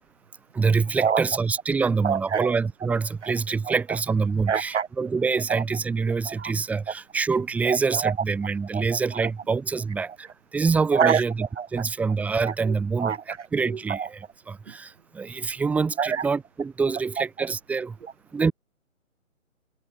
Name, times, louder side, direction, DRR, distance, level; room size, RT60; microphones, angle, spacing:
voice 1, 0.5-10.3 10.5-13.2 13.5-18.0 18.3-18.5, right 4 dB, 5° right, 2.4 m, -26 dB
voice 2, 2.0-2.6 3.2-3.3 3.7-3.8 4.5-4.9 5.5-5.6 6.2-6.5 7.6-8.1 8.7-9.3 10.9-11.2 11.6-11.8 12.4-13.5 13.9-14.1 16.0-16.2 17.2-17.3, right 7 dB, 60° right, 1.4 m, -26 dB
hypercardioid pair, 165°, 41 cm